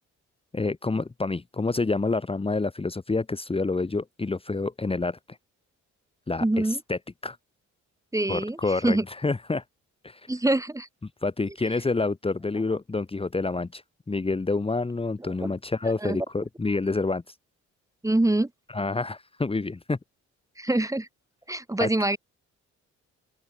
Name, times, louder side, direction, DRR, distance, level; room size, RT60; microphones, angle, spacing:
voice 1, 0.5-5.4 6.3-7.4 8.3-9.6 10.0-10.3 11.2-13.8 14.1-17.3 18.7-20.0 21.8-21.9, left 3 dB, 20° left, 1.6 m, -28 dB
voice 2, 6.4-6.8 8.1-9.0 10.3-10.9 15.2-15.5 16.0-16.3 18.0-18.5 20.6-21.1 21.5-22.2, right 2 dB, 10° right, 2.1 m, -25 dB
open air
cardioid pair, 90°, 30 cm